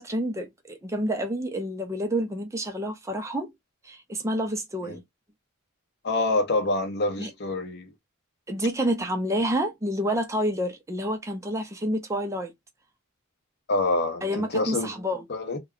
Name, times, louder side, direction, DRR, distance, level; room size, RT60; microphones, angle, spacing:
voice 1, 0.0-3.5 3.8-5.0 7.2-7.3 8.5-12.5 14.2-15.2, equal, 15° right, 0.4 m, -28 dB
voice 2, 6.0-7.9 13.7-14.9 15.3-15.6, left 2 dB, 50° left, 0.7 m, -26 dB
2.2 x 2.0 x 3.5 m
head